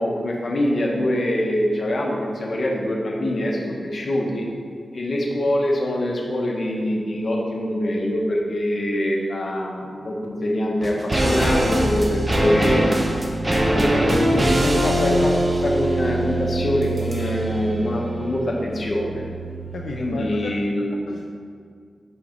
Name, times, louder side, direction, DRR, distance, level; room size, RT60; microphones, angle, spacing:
voice 1, 0.0-4.5 4.9-12.8 13.4-15.3 15.6-19.3 19.9-21.0, left 1 dB, 45° left, -1 dB, 0.9 m, -24 dB
sound 1, 10.8-20.2 20.4-20.5, right 1 dB, 25° right, 0.6 m, -23 dB
voice 2, 19.7-20.6 21.1-21.3, left 3 dB, 70° left, 0 dB, 0.4 m, -33 dB
5.8 x 5.4 x 3.7 m, 2.1 s
wide cardioid pair, 140°, 0 cm